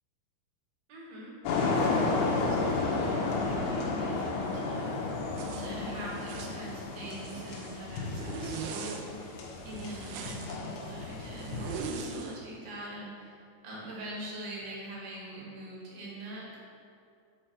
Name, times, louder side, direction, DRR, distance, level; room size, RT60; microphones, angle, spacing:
voice 1, 0.9-13.4 13.6-16.6, right 1 dB, 70° right, -4 dB, 3.3 m, -44 dB
sound 1, 1.5-11.8, left 3 dB, 90° left, 3.2 m, -32 dB
Zipper (clothing), 5.3-5.7 6.1-6.6 7.1-7.8 8.1-9.0 9.7-10.6 11.4-12.4, right 5 dB, 85° right, 2.8 m, -40 dB
7.7 x 4.4 x 6.2 m, 2.4 s
omnidirectional pair, 4.7 m